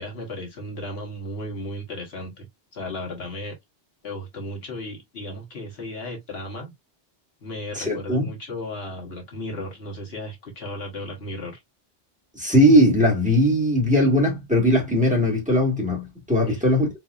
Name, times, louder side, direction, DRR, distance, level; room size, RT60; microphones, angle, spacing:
voice 1, 0.0-2.5 2.7-3.5 4.0-6.7 7.4-11.6 16.4-16.6, left 1 dB, 75° left, 1.5 m, -35 dB
voice 2, 7.7-8.3 12.3-16.9, equal, 5° right, 1.7 m, -19 dB
4.3 x 2.7 x 2.4 m
omnidirectional pair, 1.0 m